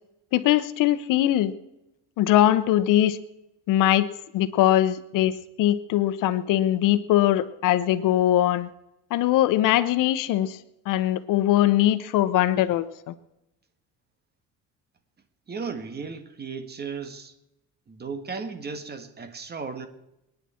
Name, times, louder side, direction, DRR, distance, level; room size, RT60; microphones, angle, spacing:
voice 1, 0.3-1.5 2.2-3.2 3.7-4.1 4.3-5.3 5.6-8.7 9.1-10.6 10.9-13.1, left 13 dB, 75° left, 13 dB, 0.9 m, -21 dB
voice 2, 15.5-17.3 17.9-19.9, right 5 dB, 30° right, 9 dB, 1.7 m, -35 dB
28.0 x 10.0 x 4.4 m, 0.91 s
cardioid pair, 125°, 32 cm